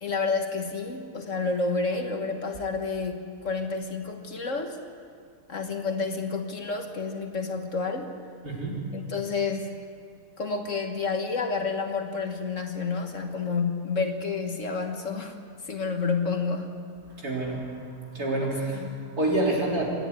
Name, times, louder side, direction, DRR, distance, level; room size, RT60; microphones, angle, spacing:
voice 1, 0.0-4.8 5.5-8.1 8.9-9.8 10.4-15.4 15.6-16.7 18.7-19.0, left 4 dB, 50° left, 5 dB, 1.7 m, -29 dB
voice 2, 8.4-8.8 17.2-17.7 18.1-18.9 19.2-19.9, right 2 dB, 70° right, -3 dB, 4.3 m, -27 dB
26.5 x 10.5 x 9.5 m, 2.2 s
omnidirectional pair, 1.7 m